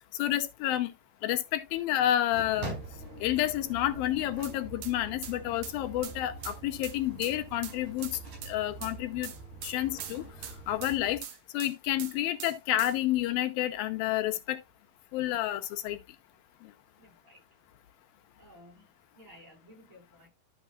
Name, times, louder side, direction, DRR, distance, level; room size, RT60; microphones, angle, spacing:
voice 1, 0.2-0.9 1.2-2.7 3.2-8.1 8.5-9.3 9.6-10.2 10.7-11.2 11.5-14.6 15.1-16.0, left 13 dB, 85° left, 2.5 m, -29 dB
sound 1, 2.3-11.2, right 3 dB, 55° right, 6.1 m, -44 dB
sound 2, 4.4-4.5 4.8-4.9 5.2-5.4 5.6-5.8 6.0-6.2 6.4-6.6 6.8-7.0 7.2-7.4 7.6-7.8 8.0-8.2 8.4-8.5 8.8-8.9 9.2-9.8 10.0-11.7 12.0-12.2 12.4-13.0, right 10 dB, 80° right, 1.4 m, -42 dB
voice 2, 17.0-17.4 18.4-18.9 19.2-20.3, equal, 35° right, 6.0 m, -55 dB
12.0 x 7.2 x 2.4 m
omnidirectional pair, 4.3 m